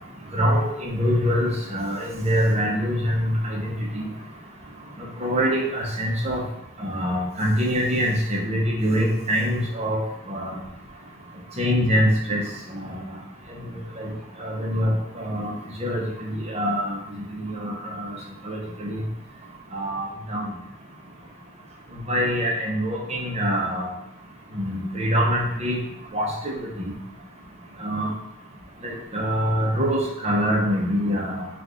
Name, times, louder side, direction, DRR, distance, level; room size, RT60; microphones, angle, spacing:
voice 1, 0.3-4.0 5.0-6.4 6.8-10.0 10.3-10.6 11.6-12.4 12.7-13.0 13.7-14.1 14.4-17.0 17.3-18.2 18.4-19.0 19.7-20.5 22.1-23.9 24.5-25.8 26.1-26.9 27.8-28.1 28.8-31.5, equal, 30° right, -3 dB, 0.9 m, -24 dB
4.6 x 2.6 x 3.7 m, 0.81 s
head